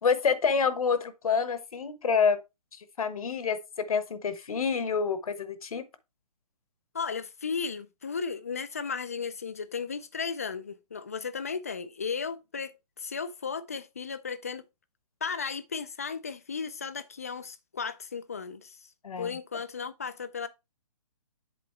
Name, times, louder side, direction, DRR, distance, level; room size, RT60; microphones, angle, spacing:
voice 1, 0.0-2.4 3.0-5.8 19.0-19.3, left 5 dB, 65° left, 1.1 m, -27 dB
voice 2, 6.9-14.6 15.2-18.8 19.2-20.5, left 5 dB, 25° left, 0.3 m, -35 dB
7.7 x 3.9 x 4.3 m
hypercardioid pair, 170°, 20 cm